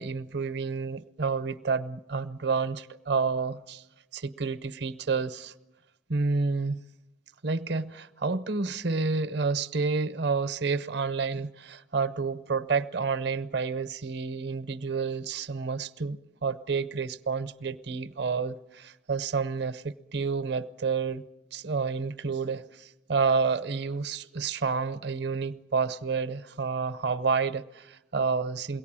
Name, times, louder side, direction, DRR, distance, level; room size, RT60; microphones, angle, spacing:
voice 1, 0.0-3.8 4.1-5.5 6.1-6.8 7.4-21.2 21.5-28.8, right 4 dB, 55° right, 0.7 m, -29 dB
22.5 x 17.5 x 8.8 m
head